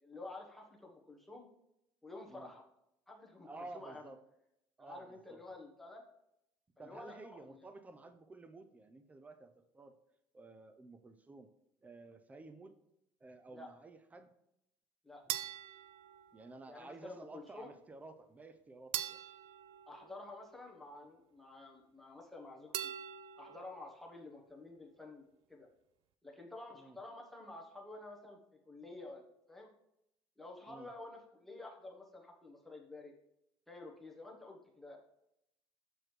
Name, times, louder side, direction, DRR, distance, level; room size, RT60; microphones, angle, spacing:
voice 1, 0.0-1.5 2.0-2.6 3.1-4.1 4.8-6.0 6.8-7.4 13.5-13.7 15.0-15.2 16.7-17.7 19.9-22.9 23.4-25.7 26.2-29.7 30.4-33.1 33.7-35.0, left 2 dB, ahead, -1 dB, 1.0 m, -50 dB
voice 2, 3.4-4.2 4.8-5.4 6.8-10.0 10.3-11.5 11.8-12.8 13.2-14.3 16.3-19.2 26.7-27.0 30.7-30.9, right 3 dB, 15° right, 10 dB, 0.5 m, -53 dB
sound 1, 15.3-16.8 18.9-20.8 22.7-23.9, right 12 dB, 75° right, 0.4 m, -43 dB
6.8 x 6.1 x 3.2 m, 0.82 s
cardioid pair, 140°, 10 cm